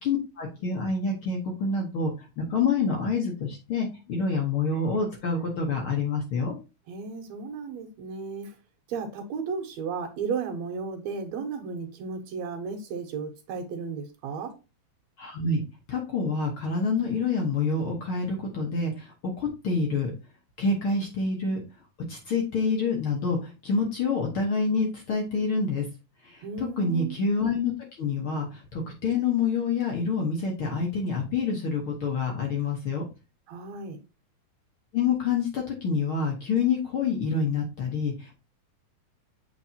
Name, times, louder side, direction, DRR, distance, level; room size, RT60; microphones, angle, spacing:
voice 1, 0.0-6.6 15.2-15.6 15.9-20.1 20.6-21.6 22.1-25.8 26.2-27.7 28.0-33.0 34.9-38.3, left 4 dB, 55° left, 1.5 m, -27 dB
voice 2, 6.9-8.6 8.9-14.5 26.4-27.2 33.5-34.0, right 5 dB, 70° right, 2.1 m, -34 dB
7.5 x 4.6 x 2.7 m
omnidirectional pair, 3.7 m